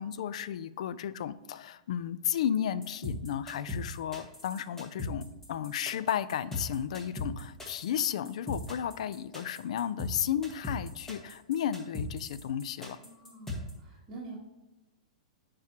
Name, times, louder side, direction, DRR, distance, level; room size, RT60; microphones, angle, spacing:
voice 1, 0.0-13.0, left 9 dB, 65° left, 15 dB, 0.4 m, -33 dB
sound 1, 2.8-13.7, left 2 dB, 10° left, 1.7 m, -38 dB
voice 2, 13.0-14.4, right 3 dB, 25° right, -7 dB, 1.8 m, -46 dB
9.5 x 4.7 x 3.0 m, 1.0 s
hypercardioid pair, 125°, 4 cm